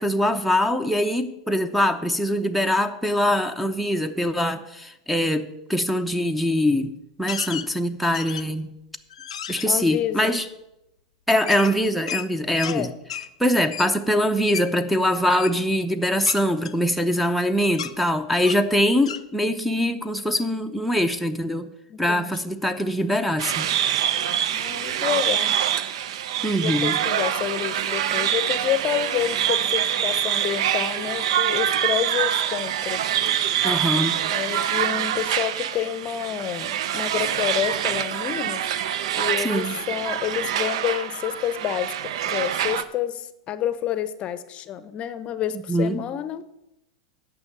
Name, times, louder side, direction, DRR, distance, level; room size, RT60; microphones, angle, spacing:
voice 1, 0.0-6.9 7.2-8.7 9.5-10.5 11.3-12.9 13.4-21.7 22.0-23.7 26.4-27.0 33.6-34.2 39.4-39.8 45.7-46.1, equal, ahead, 11 dB, 0.7 m, -23 dB
sound 1, 7.3-7.7 8.1-8.6 9.1-9.7 11.5-12.8 13.1-13.3 13.7-13.9 14.5-14.7 15.3-15.6 16.3-17.4 17.7-17.9 18.4-18.7 19.1-19.2, left 9 dB, 80° left, 0.5 m, -33 dB
voice 2, 9.7-10.3 12.6-12.9 21.9-22.5 24.5-25.5 26.6-33.1 34.3-38.6 39.2-46.4, left 11 dB, 35° left, 14 dB, 0.7 m, -29 dB
sound 2, 23.4-42.8, right 10 dB, 65° right, 0.6 m, -25 dB
9.6 x 6.1 x 7.5 m, 0.88 s
hypercardioid pair, 100°, 3 cm